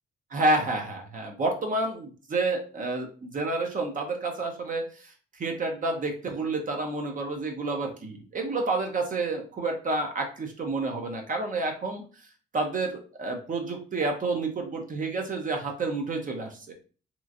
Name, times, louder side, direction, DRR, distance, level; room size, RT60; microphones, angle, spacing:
voice 1, 0.3-12.0 12.5-16.8, right 2 dB, 40° right, 3 dB, 0.7 m, -29 dB
2.9 x 2.4 x 2.5 m, 0.38 s
cardioid pair, 90°, 20 cm